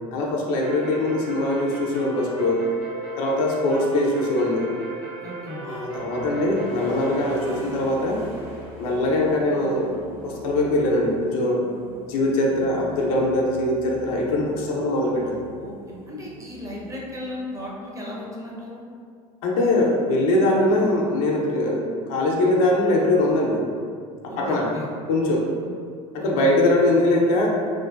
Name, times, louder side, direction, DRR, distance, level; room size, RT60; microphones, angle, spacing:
voice 1, 0.1-2.7 3.2-4.7 5.6-8.2 8.8-9.9 10.2-11.7 12.1-15.4 19.4-23.6 24.2-24.7 25.1-25.4 26.1-27.5, left 1 dB, 70° left, -1 dB, 0.5 m, -22 dB
sound 1, 0.6-7.7, right 3 dB, 70° right, 0.7 m, -37 dB
voice 2, 5.2-5.7 12.6-13.0 15.6-18.8 24.2-24.9 25.6-25.7 26.2-26.5, left 1 dB, 15° right, -4 dB, 0.6 m, -36 dB
sound 2, 6.0-17.5, right 1 dB, 50° right, 1.0 m, -41 dB
2.5 x 2.1 x 2.3 m, 2.1 s
hypercardioid pair, 70°, 19 cm